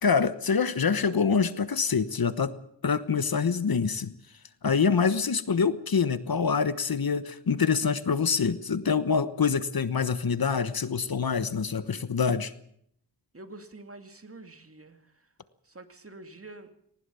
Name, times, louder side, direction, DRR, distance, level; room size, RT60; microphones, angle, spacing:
voice 1, 0.0-2.5 2.8-4.1 4.6-12.5, left 5 dB, 60° left, 13 dB, 1.3 m, -25 dB
voice 2, 13.3-15.3 15.6-16.7, right 2 dB, 35° right, 8 dB, 2.3 m, -47 dB
19.5 x 19.0 x 7.0 m, 0.69 s
wide cardioid pair, 65°, 41 cm